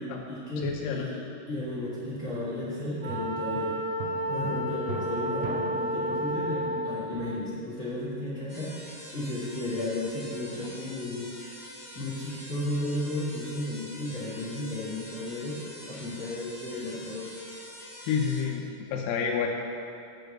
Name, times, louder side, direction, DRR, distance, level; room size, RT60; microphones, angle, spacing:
voice 1, 0.0-0.7 0.9-11.6 11.9-15.6 15.9-17.3, left 1 dB, 40° left, -9 dB, 1.1 m, -34 dB
voice 2, 0.6-1.1 18.1-19.5, left 6 dB, 85° left, 0 dB, 2.3 m, -29 dB
sound 1, 1.6-8.0 15.5-16.6, right 7 dB, 80° right, 2.3 m, -43 dB
Wind instrument woodwind instrument, 3.0-7.2, equal, 60° right, 1.6 m, -31 dB
sound 2, 8.5-18.4, equal, 10° right, 0.5 m, -45 dB
7.1 x 6.6 x 7.8 m, 2.5 s
omnidirectional pair, 3.9 m